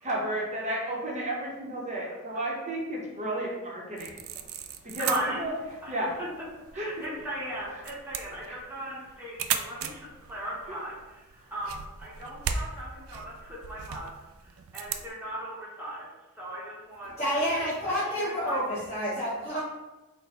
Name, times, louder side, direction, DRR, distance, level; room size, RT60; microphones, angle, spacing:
voice 1, 0.0-4.1 4.8-5.5 5.9-6.2 6.7-7.0 8.4-8.6 10.7-10.8 11.4-11.5, right 1 dB, 30° right, -3 dB, 0.8 m, -33 dB
sound 1, 4.0-15.1, right 7 dB, 65° right, 0.3 m, -38 dB
voice 2, 4.9-5.4 5.8-6.3 6.7-14.1 14.4-16.1 16.3-18.6, right 1 dB, 10° right, -7 dB, 0.9 m, -38 dB
voice 3, 17.2-19.6, equal, 30° left, -14 dB, 1.4 m, -29 dB
4.0 x 2.2 x 4.1 m, 1.1 s
head